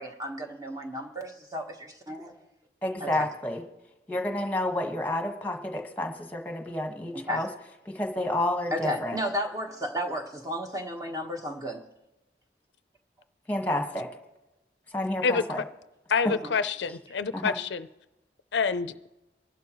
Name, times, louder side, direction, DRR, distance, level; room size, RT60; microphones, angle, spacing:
voice 1, 0.0-2.3 3.0-3.3 7.1-7.4 8.7-11.8 16.3-16.5, equal, 20° right, 3 dB, 1.3 m, -33 dB
voice 2, 2.8-3.6 4.1-7.5 7.8-9.2 13.5-14.1 14.9-15.6 17.3-17.5, left 1 dB, 10° left, 3 dB, 1.5 m, -30 dB
voice 3, 16.1-17.9 18.5-19.1, left 5 dB, 80° left, 12 dB, 0.5 m, -27 dB
24.0 x 11.5 x 3.0 m, 1.0 s
head